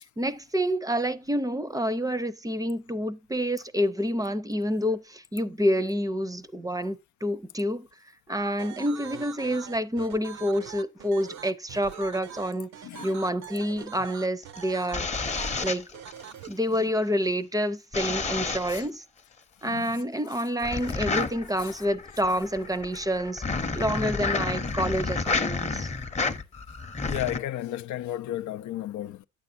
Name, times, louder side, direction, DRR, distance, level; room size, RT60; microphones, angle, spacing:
voice 1, 0.2-7.9 8.3-15.9 16.5-19.0 19.6-25.9, equal, 10° right, 0.6 m, -28 dB
sound 1, 8.6-16.5, right 9 dB, 65° right, 0.7 m, -43 dB
voice 2, 12.8-13.2 18.7-18.8 19.6-20.0 21.6-21.8 27.1-29.3, left 13 dB, 75° left, 0.5 m, -34 dB
sound 2, 14.4-16.5 17.9-18.9 20.6-27.4, left 4 dB, 20° left, 0.8 m, -30 dB
8.8 x 7.0 x 2.6 m
cardioid pair, 90°, 30 cm